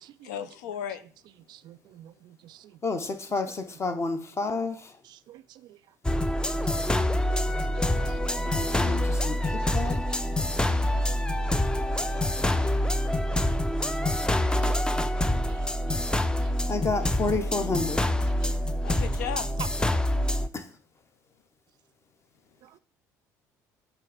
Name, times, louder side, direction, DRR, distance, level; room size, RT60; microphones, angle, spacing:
voice 1, 0.2-1.0 14.5-14.8 18.8-19.5, left 8 dB, 70° left, 0.6 m, -35 dB
voice 2, 1.5-2.7 5.3-5.4 7.7-7.8 8.0-8.2 10.7-10.8 11.1-11.2 15.5-15.6 15.9-16.0 18.4-18.6 18.9-19.0 19.6-19.7, right 13 dB, 50° right, 0.4 m, -46 dB
voice 3, 2.8-4.9 8.4-10.1 16.7-18.0 20.5-20.7, left 3 dB, 30° left, 1.0 m, -30 dB
sound 1, 6.0-20.5, left 1 dB, 10° left, 0.5 m, -26 dB
8.2 x 3.2 x 5.0 m
figure-of-eight pair, 55°, 10 cm